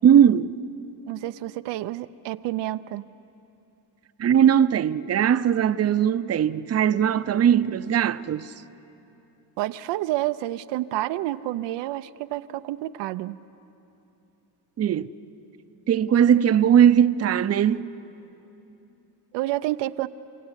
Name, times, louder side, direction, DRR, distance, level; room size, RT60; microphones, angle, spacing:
voice 1, 0.0-0.5 4.2-8.5 14.8-15.1 15.9-17.9, right 9 dB, 35° right, 0.6 m, -19 dB
voice 2, 1.1-3.1 9.6-13.4 19.3-20.1, right 16 dB, 90° right, 0.6 m, -29 dB
29.5 x 15.5 x 9.9 m
cardioid pair, 105°, 41 cm